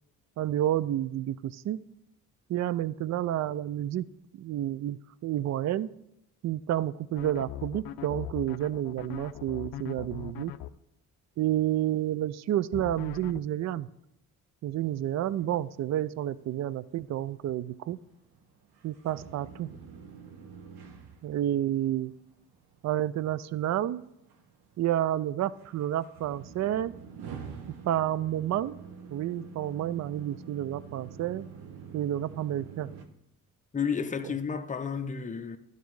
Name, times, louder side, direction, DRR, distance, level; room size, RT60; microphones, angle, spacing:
voice 1, 0.4-1.8 2.5-4.0 4.3-5.9 6.4-10.5 11.4-13.9 14.6-18.0 18.8-19.7 21.2-22.1 22.8-24.0 24.8-26.9 27.9-28.8 29.1-31.5 31.9-32.9, right 12 dB, 45° right, 0.4 m, -30 dB
sound 1, 7.2-10.7 12.7-13.4, left 13 dB, 65° left, 0.5 m, -40 dB
sound 2, 14.8-33.1, right 6 dB, 80° right, 1.0 m, -47 dB
voice 2, 33.7-35.6, left 6 dB, 20° left, 0.7 m, -31 dB
11.5 x 4.1 x 4.7 m
supercardioid pair, 65°, 39 cm